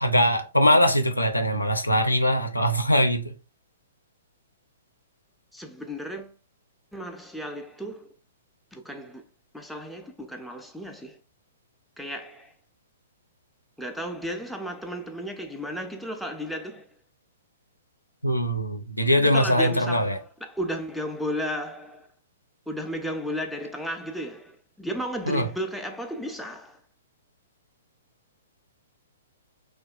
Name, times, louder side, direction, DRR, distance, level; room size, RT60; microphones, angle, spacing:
voice 1, 0.0-3.3 18.2-20.2 25.3-25.4, equal, 85° left, 0.4 m, -22 dB
voice 2, 5.5-6.4 6.9-8.1 8.7-9.2 9.5-11.2 12.0-12.5 13.8-17.0 19.2-22.1 22.7-26.8, equal, ahead, 0.3 m, -34 dB
2.7 x 2.3 x 2.3 m
figure-of-eight pair, 115°, 0 cm